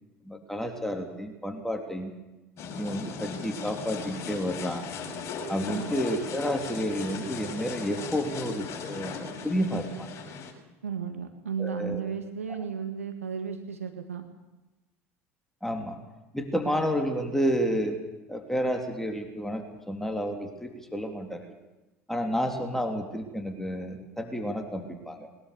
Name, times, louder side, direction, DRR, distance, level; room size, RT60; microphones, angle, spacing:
voice 1, 0.2-2.1 2.8-4.9 5.5-10.1 11.6-12.0 15.6-16.0 16.3-18.0 18.3-21.5 22.1-25.3, equal, 5° left, 3 dB, 3.4 m, -30 dB
sound 1, 2.6-10.5, left 5 dB, 40° left, 6.3 m, -38 dB
voice 2, 10.8-14.2, right 6 dB, 90° right, 6 dB, 1.7 m, -34 dB
22.0 x 21.0 x 7.1 m, 1.1 s
hypercardioid pair, 75°, 7 cm